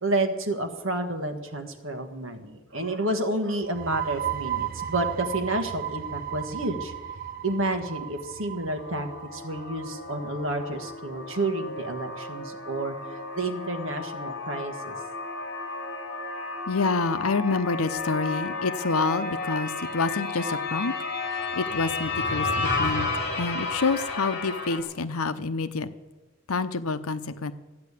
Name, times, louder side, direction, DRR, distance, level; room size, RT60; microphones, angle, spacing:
voice 1, 0.0-6.9 7.4-15.0, right 2 dB, 65° right, 6 dB, 1.7 m, -30 dB
sound 1, 3.6-11.1, right 10 dB, 40° right, 0.4 m, -35 dB
sound 2, 8.8-24.8, left 3 dB, 50° left, 2.6 m, -32 dB
voice 2, 16.7-20.9 21.5-23.1 23.4-25.9 26.5-27.5, left 4 dB, 85° left, 12 dB, 0.8 m, -27 dB
13.5 x 9.6 x 8.3 m, 1.2 s
head